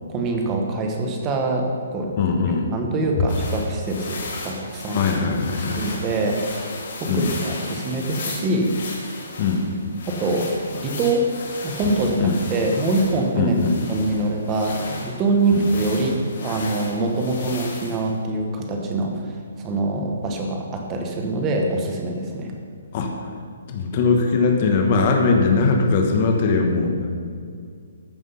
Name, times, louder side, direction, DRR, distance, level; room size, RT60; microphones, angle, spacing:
voice 1, 0.1-2.3 2.7-5.1 5.7-6.7 7.0-8.7 10.1-11.2 11.6-13.6 13.9-19.2 19.6-22.5, right 2 dB, 15° right, 2 dB, 1.0 m, -24 dB
voice 2, 2.2-2.7 4.9-5.9 7.1-7.3 9.4-9.7 12.2-12.4 13.3-13.8 15.5-15.7 22.9-23.1 23.7-27.1, left 4 dB, 25° left, 2 dB, 1.1 m, -20 dB
sound 1, 3.3-18.1, left 3 dB, 50° left, 2.4 m, -35 dB
13.5 x 5.9 x 5.6 m, 2.2 s
hypercardioid pair, 180°, 0 cm